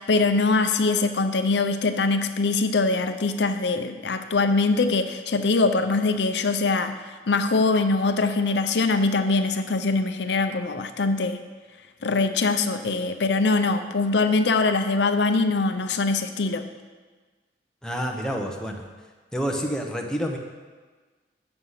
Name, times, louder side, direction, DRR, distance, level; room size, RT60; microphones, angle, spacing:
voice 1, 0.0-6.9 7.3-11.4 12.0-16.7, left 3 dB, 70° left, 8 dB, 0.6 m, -23 dB
voice 2, 17.8-18.9 19.3-20.4, equal, 5° left, 0 dB, 0.9 m, -28 dB
8.0 x 6.6 x 5.6 m, 1.4 s
head